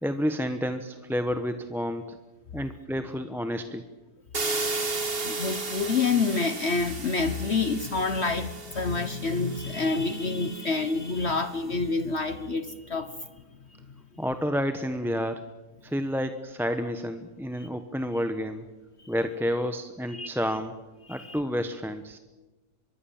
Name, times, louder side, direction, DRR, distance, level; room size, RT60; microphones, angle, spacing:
voice 1, 0.0-2.2 2.5-3.8 14.2-15.4 15.8-18.6 19.1-20.7 21.1-22.2, equal, ahead, 8 dB, 0.9 m, -30 dB
sound 1, 4.3-11.2, right 3 dB, 35° right, 2.0 m, -35 dB
voice 2, 5.1-13.1 17.6-17.7 20.1-20.3 21.1-21.4, left 4 dB, 45° left, 11 dB, 1.2 m, -28 dB
25.0 x 22.0 x 7.3 m, 1.1 s
omnidirectional pair, 1.7 m